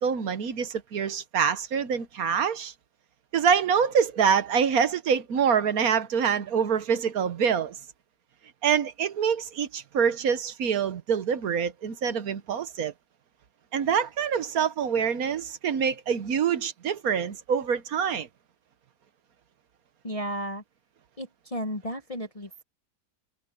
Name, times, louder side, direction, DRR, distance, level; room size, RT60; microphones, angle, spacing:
voice 1, 0.0-2.7 3.3-7.8 8.6-12.9 13.7-18.3, right 7 dB, 65° right, 1.4 m, -25 dB
voice 2, 20.0-20.6 21.2-22.6, equal, 25° left, 0.9 m, -34 dB
omnidirectional pair, 1.8 m